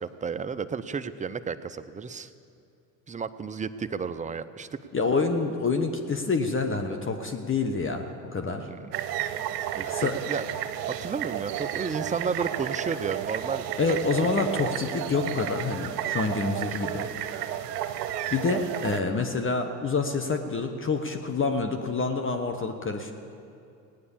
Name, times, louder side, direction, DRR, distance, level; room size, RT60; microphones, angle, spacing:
voice 1, 0.0-2.3 3.1-4.7 8.6-8.9 9.7-10.4 11.0-14.3, right 5 dB, 15° right, 12 dB, 0.6 m, -32 dB
voice 2, 4.9-8.7 9.9-10.1 13.8-17.1 18.3-23.1, left 4 dB, 25° left, 5 dB, 1.1 m, -27 dB
sound 1, 8.9-19.0, right 11 dB, 85° right, 0.9 m, -32 dB
17.5 x 9.6 x 7.2 m, 2.5 s
hypercardioid pair, 75°, 47 cm